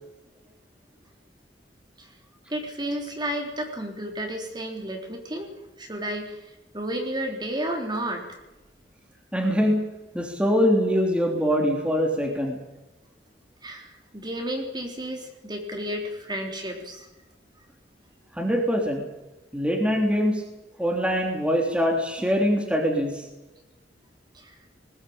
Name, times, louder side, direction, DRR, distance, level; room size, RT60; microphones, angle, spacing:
voice 1, 2.5-5.5 5.8-6.4 6.7-8.2 13.6-17.1 24.4-24.5, right 1 dB, 25° right, 2 dB, 3.6 m, -32 dB
voice 2, 9.3-9.8 10.1-12.6 18.4-19.0 19.5-20.4 20.8-23.1, equal, 5° right, 1 dB, 3.3 m, -23 dB
20.5 x 18.5 x 8.8 m, 1.0 s
head